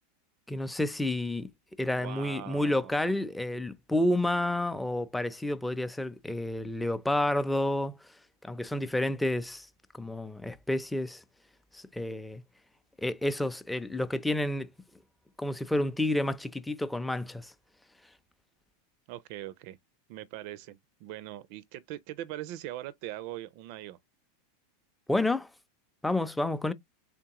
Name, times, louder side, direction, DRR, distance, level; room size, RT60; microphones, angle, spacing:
voice 1, 0.5-1.5 1.8-8.0 8.4-9.7 10.0-11.2 11.7-12.4 13.0-14.7 15.4-17.5 25.1-25.5 26.0-26.7, left 1 dB, 5° left, 0.5 m, -30 dB
voice 2, 1.9-3.0 19.1-19.8 20.1-24.0, right 14 dB, 60° right, 0.4 m, -41 dB
3.6 x 3.5 x 2.9 m
hypercardioid pair, 115°, 0 cm